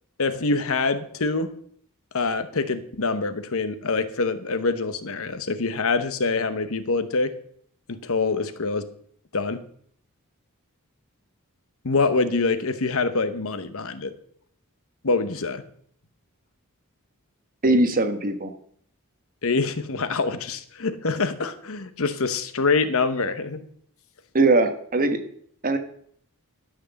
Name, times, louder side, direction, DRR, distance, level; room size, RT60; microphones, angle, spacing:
voice 1, 0.2-1.5 2.1-7.3 7.9-8.9 9.3-9.6 11.8-14.1 15.0-15.6 19.4-23.7, left 3 dB, 65° left, 11 dB, 1.0 m, -25 dB
voice 2, 17.6-18.5 24.3-25.2 25.6-25.8, right 2 dB, 40° right, 7 dB, 1.3 m, -20 dB
12.5 x 6.2 x 7.0 m, 0.64 s
head